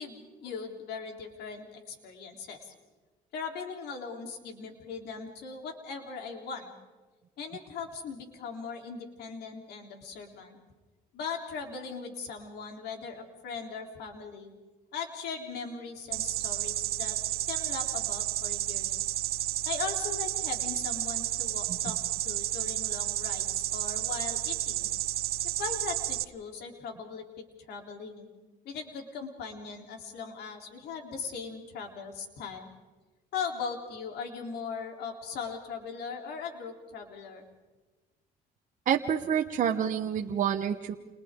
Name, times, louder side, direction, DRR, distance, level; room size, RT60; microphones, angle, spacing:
voice 1, 0.0-2.7 3.3-6.7 7.4-10.6 11.1-14.5 14.9-17.2 17.5-19.0 19.7-22.0 22.2-24.9 25.6-27.2 27.7-28.3 28.6-32.7 33.3-37.4, left 5 dB, 75° left, 3 dB, 3.5 m, -39 dB
sound 1, 16.1-26.2, right 14 dB, 65° right, 0.6 m, -31 dB
voice 2, 38.9-40.9, right 8 dB, 50° right, 4 dB, 1.1 m, -28 dB
29.0 x 28.5 x 3.8 m, 1.2 s
cardioid pair, 110°, 17 cm